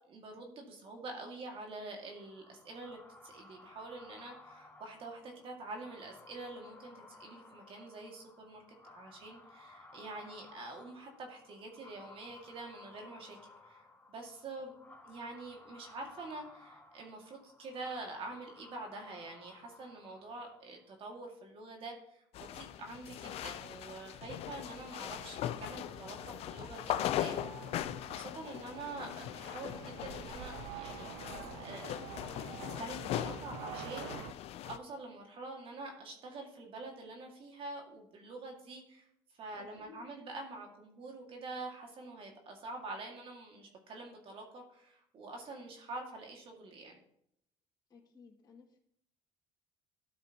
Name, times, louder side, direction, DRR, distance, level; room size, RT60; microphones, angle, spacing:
voice 1, 0.1-8.6 8.9-13.4 13.6-14.7 15.1-27.4 27.7-32.0 32.6-39.1 39.3-47.0, right 2 dB, 55° right, 2 dB, 2.2 m, -46 dB
sound 1, 2.0-20.9, left 3 dB, 15° left, 1.9 m, -57 dB
voice 2, 14.6-14.9 25.9-26.3 39.6-40.1 47.9-48.8, left 5 dB, 35° left, -6 dB, 2.4 m, -58 dB
sound 2, 22.3-34.8, left 11 dB, 65° left, 0.6 m, -40 dB
sound 3, 25.1-34.3, right 11 dB, 80° right, 0.5 m, -49 dB
13.0 x 7.0 x 3.0 m, 0.71 s
supercardioid pair, 75°, 11 cm